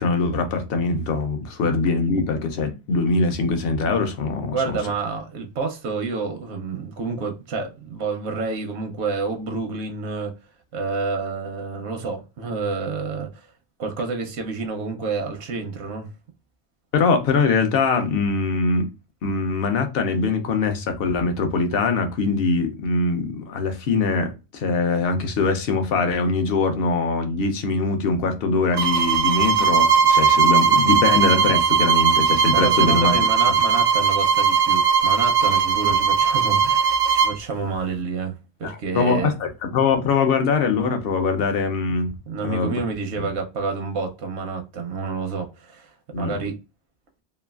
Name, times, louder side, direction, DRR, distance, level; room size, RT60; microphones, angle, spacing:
voice 1, 0.0-4.8 16.9-18.9 19.2-33.3 38.6-42.1 42.4-42.7 43.2-43.3 46.1-46.4, left 4 dB, 65° left, 0.8 m, -22 dB
voice 2, 4.4-10.3 10.7-13.5 13.8-16.1 32.5-39.3 42.3-45.9 46.2-46.6, right 4 dB, 80° right, 0.9 m, -29 dB
sound 1, 28.7-37.4, right 6 dB, 55° right, 0.5 m, -18 dB
3.0 x 2.3 x 2.3 m
omnidirectional pair, 1.1 m